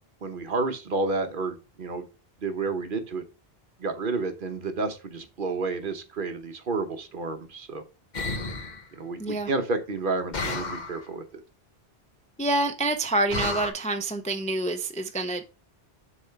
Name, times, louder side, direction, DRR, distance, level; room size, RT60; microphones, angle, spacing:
voice 1, 0.2-2.1 2.4-3.2 3.8-7.8 8.9-11.4, right 3 dB, 55° right, 1.1 m, -30 dB
sound 1, 8.1-8.8 10.3-11.0 13.3-13.7, left 3 dB, 45° left, 1.1 m, -31 dB
voice 2, 9.2-9.5 12.4-15.4, right 2 dB, 10° left, 0.4 m, -27 dB
6.9 x 3.3 x 5.6 m
omnidirectional pair, 1.1 m